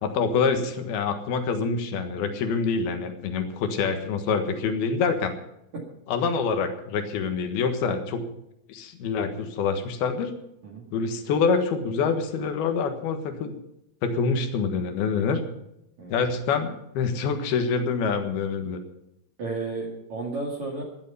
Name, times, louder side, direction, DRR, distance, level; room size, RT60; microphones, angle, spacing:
voice 1, 0.0-5.3 6.1-8.2 8.7-10.3 10.9-13.6 14.0-15.4 16.1-18.8, left 5 dB, 65° left, 6 dB, 2.8 m, -26 dB
voice 2, 19.4-20.8, right 3 dB, 45° right, -1 dB, 2.8 m, -32 dB
16.0 x 12.0 x 5.6 m, 0.83 s
omnidirectional pair, 5.8 m